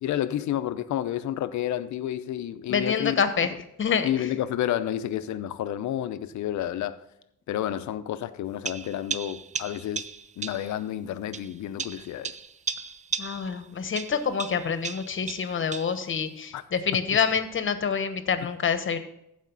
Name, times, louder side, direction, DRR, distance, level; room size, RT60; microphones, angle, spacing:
voice 1, 0.0-3.2 4.0-7.0 7.5-10.1 10.4-12.3 16.5-16.6, left 11 dB, 70° left, 0.7 m, -30 dB
voice 2, 2.7-3.5 3.8-4.3 13.2-19.0, left 6 dB, 40° left, 1.1 m, -27 dB
sound 1, 8.6-10.7 11.3-13.6 13.9-16.0, right 5 dB, 25° right, 0.4 m, -35 dB
15.0 x 5.2 x 4.0 m
cardioid pair, 90°, 30 cm